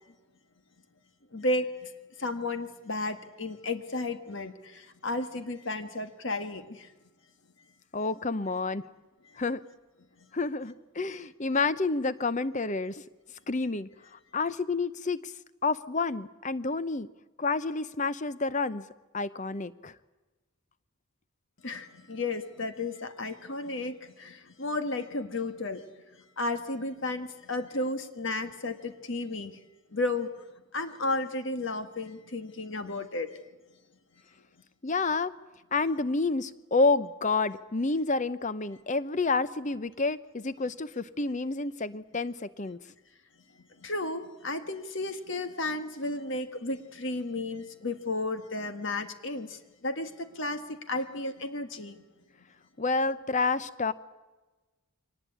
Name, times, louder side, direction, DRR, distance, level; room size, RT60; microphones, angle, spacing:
voice 1, 1.3-1.9 2.2-6.9 21.6-25.8 26.4-29.6 29.9-30.3 30.7-33.4 43.8-52.0, left 2 dB, 55° left, 8 dB, 1.5 m, -33 dB
voice 2, 7.9-8.8 9.4-9.6 10.3-13.0 13.5-13.9 14.3-15.3 15.6-17.1 17.4-18.8 19.1-19.9 34.8-35.3 35.7-42.8 52.8-53.9, left 3 dB, 35° left, 15 dB, 0.7 m, -29 dB
23.5 x 19.5 x 8.6 m, 1.2 s
head